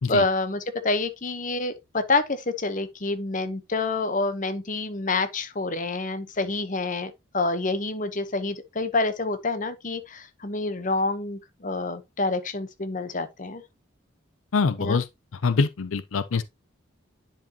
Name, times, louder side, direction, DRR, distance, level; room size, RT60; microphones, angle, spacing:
voice 1, 0.1-13.6 14.8-15.0, left 3 dB, 40° left, 0.9 m, -27 dB
voice 2, 14.5-15.0 15.4-16.4, left 4 dB, 85° left, 0.6 m, -24 dB
10.0 x 4.9 x 2.8 m
head